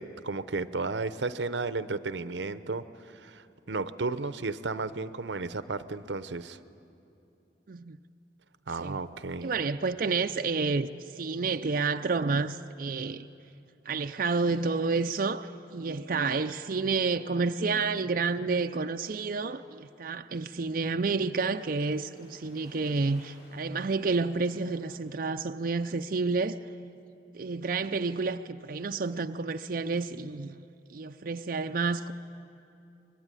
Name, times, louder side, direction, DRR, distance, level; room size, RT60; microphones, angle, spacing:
voice 1, 0.0-6.6 8.7-9.5, right 3 dB, 90° right, 0.8 m, -33 dB
voice 2, 9.4-13.3 13.9-26.6 27.3-30.6 30.9-32.1, right 4 dB, 50° right, 0.5 m, -30 dB
Waves surf, 19.9-25.5, left 1 dB, 80° left, 7.1 m, -60 dB
24.5 x 21.5 x 9.8 m
head